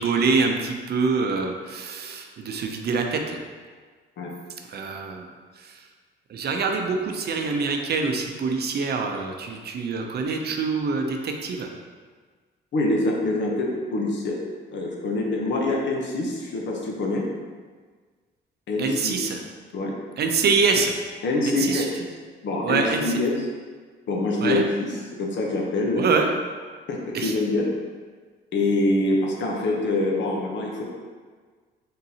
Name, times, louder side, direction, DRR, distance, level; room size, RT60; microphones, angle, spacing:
voice 1, 0.0-3.4 4.7-5.3 5.6-5.8 6.3-11.7 18.8-19.4 20.2-20.9 21.5-21.9 22.6-23.2 24.4-24.6 26.0-26.3 27.1-27.3, right 4 dB, 55° right, 3 dB, 0.5 m, -25 dB
voice 2, 12.7-14.4 14.7-17.2 18.7-19.2 19.7-19.9 21.2-21.9 22.4-23.3 24.1-24.9 25.2-26.1 26.9-27.6 28.5-30.8, left 2 dB, 65° left, -1 dB, 0.9 m, -25 dB
4.1 x 3.7 x 2.8 m, 1.5 s
cardioid pair, 90°, 20 cm